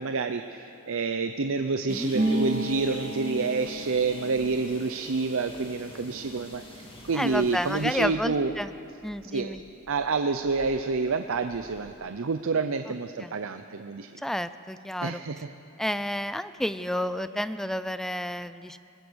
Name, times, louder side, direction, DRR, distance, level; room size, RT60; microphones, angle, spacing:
voice 1, 0.0-8.5 9.3-9.6 9.9-14.1 15.0-15.4, right 4 dB, 65° right, 8 dB, 0.7 m, -28 dB
sound 1, 1.9-8.0, left 1 dB, 25° left, 2.9 m, -47 dB
Harp, 2.1-9.6 9.9-11.0 11.2-11.9, right 1 dB, 45° right, 4.0 m, -35 dB
voice 2, 7.1-8.7 9.0-9.6 12.9-13.0 13.2-13.3 14.2-15.2 15.8-18.8, equal, ahead, 13 dB, 0.4 m, -30 dB
21.5 x 20.5 x 6.4 m, 2.7 s
head